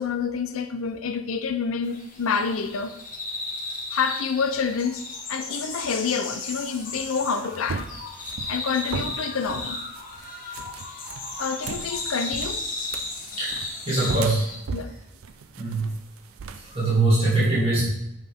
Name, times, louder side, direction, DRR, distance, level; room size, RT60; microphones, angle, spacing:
voice 1, 0.0-2.9 3.9-7.9 8.5-9.8 11.4-12.7 14.7-14.9, left 5 dB, 85° left, 0.6 m, -28 dB
sound 1, 1.8-14.6, left 2 dB, 45° left, 1.5 m, -35 dB
sound 2, 7.2-16.9, right 5 dB, 90° right, 0.5 m, -37 dB
voice 2, 13.3-14.5 15.6-15.9 16.5-17.8, right 2 dB, 30° right, 2.8 m, -23 dB
9.4 x 5.6 x 3.5 m
head